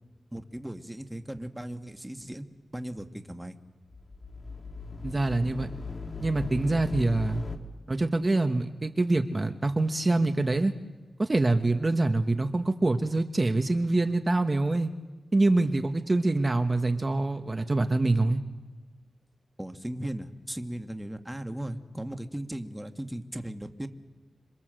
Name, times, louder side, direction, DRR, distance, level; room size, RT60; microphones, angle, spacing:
voice 1, 0.3-2.5 2.7-3.6 19.6-23.9, right 1 dB, 10° right, 7 dB, 1.8 m, -37 dB
sound 1, 3.9-7.6, left 4 dB, 40° left, 2.6 m, -38 dB
voice 2, 5.0-5.7 6.2-7.4 7.9-10.7 11.2-14.9 15.3-18.4, right 2 dB, 35° right, 6 dB, 1.3 m, -25 dB
27.0 x 24.0 x 7.8 m, 1.3 s
cardioid pair, 65°, 0 cm